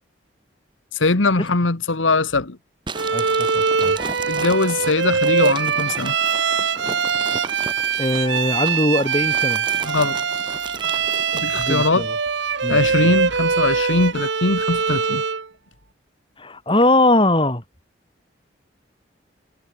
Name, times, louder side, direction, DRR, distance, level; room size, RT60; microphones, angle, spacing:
voice 1, 0.9-2.6 4.3-6.1 9.8-10.2 11.3-12.0 12.7-15.2, left 3 dB, 90° left, 1.5 m, -21 dB
sound 1, 2.9-11.6, right 3 dB, 25° right, 4.0 m, -35 dB
Bowed string instrument, 2.9-15.5, right 5 dB, 70° right, 1.0 m, -22 dB
voice 2, 3.1-4.0 8.0-9.6 11.5-12.1 12.6-12.8 16.4-17.6, left 1 dB, 25° left, 6.4 m, -20 dB
head